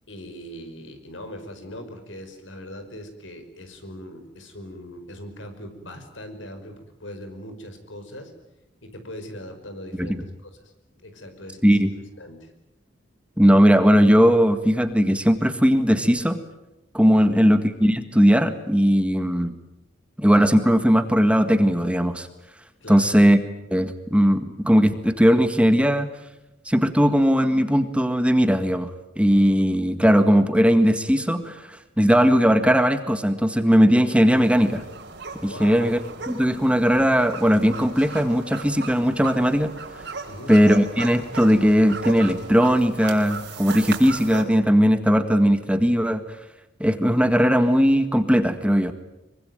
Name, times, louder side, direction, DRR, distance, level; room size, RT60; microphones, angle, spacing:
voice 1, 0.1-8.3 8.8-11.9 12.2-12.5 17.1-17.4 22.8-23.2 35.5-35.8 40.3-40.5, equal, 90° left, 8 dB, 5.4 m, -40 dB
voice 2, 13.4-16.4 16.9-19.5 20.2-22.3 22.9-23.4 23.7-26.1 26.7-28.9 29.2-31.7 32.0-34.8 35.4-36.0 36.3-39.7 40.5-46.2 46.8-48.9, equal, 5° right, 9 dB, 1.8 m, -18 dB
sound 1, 34.3-44.4, right 4 dB, 65° right, 4.6 m, -37 dB
25.0 x 24.0 x 9.3 m, 0.89 s
head